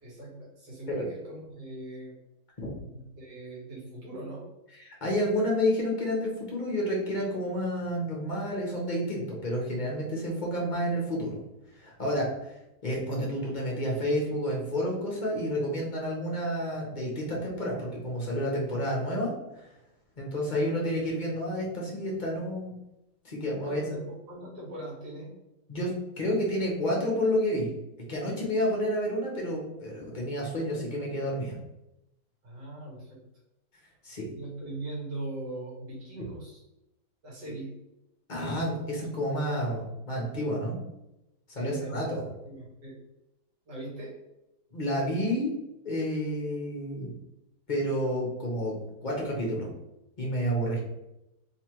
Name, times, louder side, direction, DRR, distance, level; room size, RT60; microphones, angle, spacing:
voice 1, 0.0-2.1 2.9-4.5 20.5-20.9 23.6-25.3 32.4-33.2 34.3-36.6 37.2-37.7 41.6-42.9 43.7-44.2, right 2 dB, 70° right, -6 dB, 2.2 m, -40 dB
voice 2, 4.8-11.4 11.8-12.3 12.8-19.6 20.2-22.7 23.2-24.0 25.7-25.9 26.2-27.7 28.1-31.5 34.0-34.2 38.3-40.8 41.5-42.2 44.7-45.5 45.8-47.1 47.7-48.8 49.0-49.7 50.2-50.8, equal, 30° left, -2 dB, 1.1 m, -30 dB
4.0 x 3.3 x 3.0 m, 0.91 s
omnidirectional pair, 1.8 m